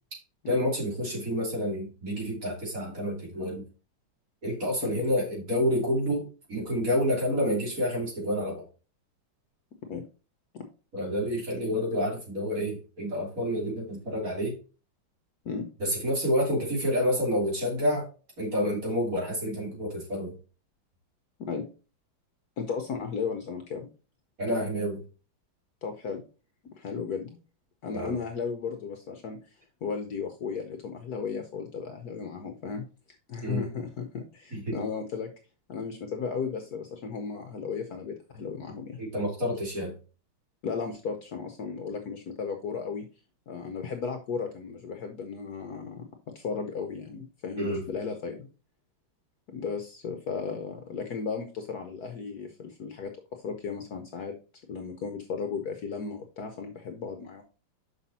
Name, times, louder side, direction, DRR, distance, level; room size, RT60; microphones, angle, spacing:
voice 1, 0.5-3.7 4.4-8.7 10.9-14.6 15.8-18.1 18.4-20.3 24.4-25.0 27.9-28.1 33.4-33.7 34.5-34.8 39.0-39.9 47.6-47.8, equal, 40° right, -3 dB, 3.4 m, -28 dB
voice 2, 22.6-23.9 25.8-26.2 26.8-27.4 27.8-29.4 29.8-32.9 33.3-35.3 35.7-39.0 40.6-43.0 43.5-46.0 46.3-48.4 49.5-53.1 53.4-54.3 54.7-57.4, left 5 dB, 60° left, 6 dB, 1.1 m, -35 dB
6.2 x 5.8 x 4.1 m, 0.35 s
omnidirectional pair, 2.2 m